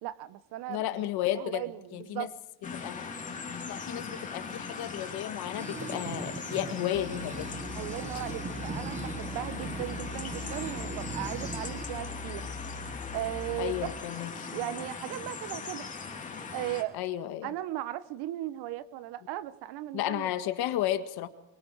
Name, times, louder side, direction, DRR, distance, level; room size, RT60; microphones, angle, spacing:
voice 1, 0.0-1.0 1.3-2.3 7.7-12.5 13.1-13.9 14.5-15.9 16.5-17.0 17.4-20.3, right 14 dB, 70° right, 15 dB, 1.2 m, -37 dB
voice 2, 0.7-1.6 1.9-2.3 2.7-3.1 3.7-7.5 13.6-14.5 16.9-17.5 19.9-21.3, left 13 dB, 65° left, 9 dB, 1.8 m, -33 dB
sound 1, 2.6-16.8, left 5 dB, 20° left, 3.0 m, -40 dB
sound 2, 5.6-12.2, right 4 dB, 15° right, 1.1 m, -40 dB
sound 3, 6.9-13.9, left 3 dB, 40° left, 1.4 m, -42 dB
25.0 x 23.0 x 4.8 m, 0.83 s
cardioid pair, 175°, 41 cm